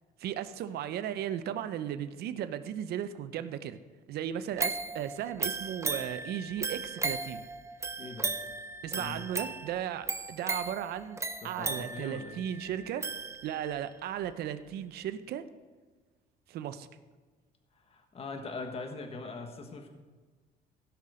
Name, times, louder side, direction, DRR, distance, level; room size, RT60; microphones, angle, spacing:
voice 1, 0.2-3.8 4.1-7.4 8.8-13.0 13.4-15.4 16.5-16.9, right 10 dB, 70° right, 11 dB, 0.7 m, -36 dB
sound 1, 4.6-13.8 14.3-14.4, right 3 dB, 15° right, 0.7 m, -36 dB
voice 2, 8.0-8.4 8.9-9.3 11.4-12.4 17.7-19.9, left 3 dB, 35° left, 4 dB, 1.4 m, -42 dB
16.0 x 5.9 x 5.0 m, 1.4 s
cardioid pair, 110°, 17 cm